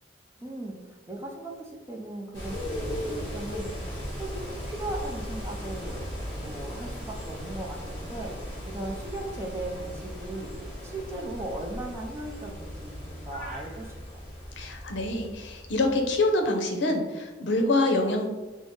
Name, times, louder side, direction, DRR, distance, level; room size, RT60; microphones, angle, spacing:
voice 1, 0.4-6.1 6.3-14.2, right 2 dB, 15° right, -1 dB, 0.5 m, -38 dB
sound 1, 2.3-16.4, equal, 15° left, 1.5 m, -37 dB
voice 2, 14.6-18.3, left 2 dB, 70° left, 3 dB, 0.6 m, -25 dB
5.2 x 2.0 x 3.5 m, 1.2 s
head